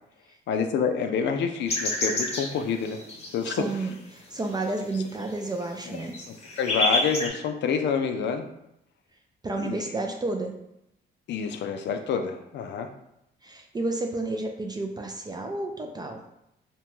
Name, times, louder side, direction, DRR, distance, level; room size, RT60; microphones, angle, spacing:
voice 1, 0.5-3.0 3.3-3.6 5.9-6.0 6.6-8.5 9.6-9.9 11.3-12.9, left 6 dB, 65° left, 6 dB, 0.4 m, -27 dB
sound 1, 1.7-3.9 4.3-7.3, left 1 dB, 30° left, 0.7 m, -28 dB
voice 2, 3.5-6.1 9.4-10.5 13.4-16.2, right 2 dB, 20° right, 3 dB, 0.3 m, -31 dB
2.8 x 2.2 x 3.0 m, 0.82 s
cardioid pair, 90°, 20 cm